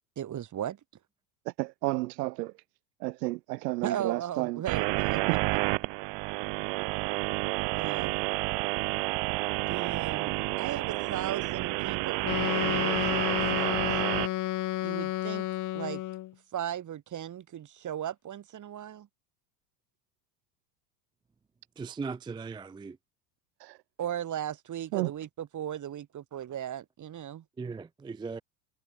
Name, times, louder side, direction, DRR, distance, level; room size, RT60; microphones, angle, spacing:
voice 1, 0.2-0.8 3.8-5.4 7.8-8.2 9.7-14.0 14.8-15.5 15.7-16.0 16.5-19.1 24.0-26.1 26.3-27.4, right 10 dB, 35° right, 3.4 m, -37 dB
voice 2, 1.4-2.5 3.0-4.6 5.3-5.4 23.6-23.8 24.9-25.1, right 21 dB, 75° right, 1.8 m, -31 dB
sound 1, 4.7-14.3, right 30 dB, 55° right, 1.0 m, -30 dB
Wind instrument woodwind instrument, 12.2-16.3, left 15 dB, 40° left, 0.9 m, -31 dB
voice 3, 21.8-23.0 27.6-28.4, right 4 dB, 10° right, 0.5 m, -38 dB
hypercardioid pair, 95°, 49 cm